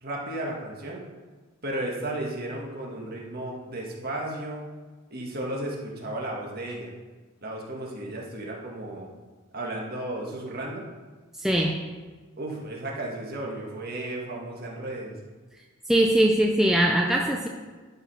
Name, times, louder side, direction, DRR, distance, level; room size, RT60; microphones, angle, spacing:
voice 1, 0.0-1.0 1.6-4.6 5.1-6.9 7.4-9.1 9.5-10.8 12.4-15.2, right 1 dB, 45° right, -2 dB, 1.7 m, -34 dB
voice 2, 11.4-11.9 15.9-17.5, right 1 dB, ahead, 0 dB, 0.5 m, -21 dB
11.0 x 5.1 x 5.6 m, 1.3 s
head